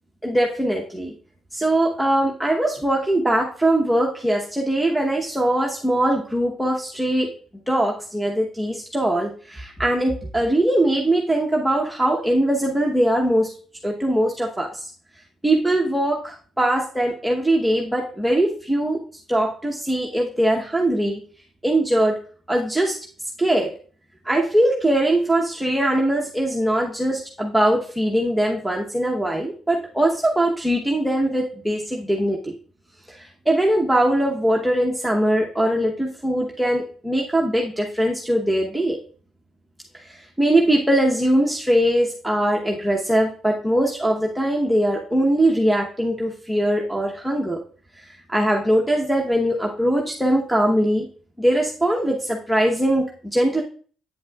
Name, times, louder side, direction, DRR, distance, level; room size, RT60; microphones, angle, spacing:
voice 1, 0.2-1.1 1.5-7.3 7.7-13.5 13.8-14.8 15.4-19.0 19.3-21.2 21.6-22.2 22.5-23.0 23.4-23.7 24.2-32.5 33.1-39.0 40.0-47.6 48.1-51.1 51.4-53.6, right 1 dB, ahead, -1 dB, 0.9 m, -21 dB
8.6 x 7.1 x 2.3 m, 0.42 s
cardioid pair, 90°, 0 cm